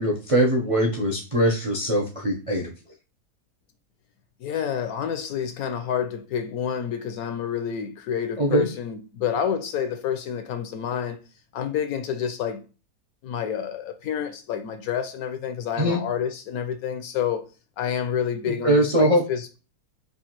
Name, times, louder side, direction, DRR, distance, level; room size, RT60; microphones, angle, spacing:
voice 1, 0.0-2.7 8.4-8.7 15.8-16.0 18.6-19.2, right 1 dB, 50° right, 0.4 m, -21 dB
voice 2, 4.4-11.2 11.5-12.6 13.2-17.5 17.8-19.5, left 8 dB, 70° left, 0.9 m, -28 dB
4.8 x 2.5 x 2.9 m
omnidirectional pair, 1.8 m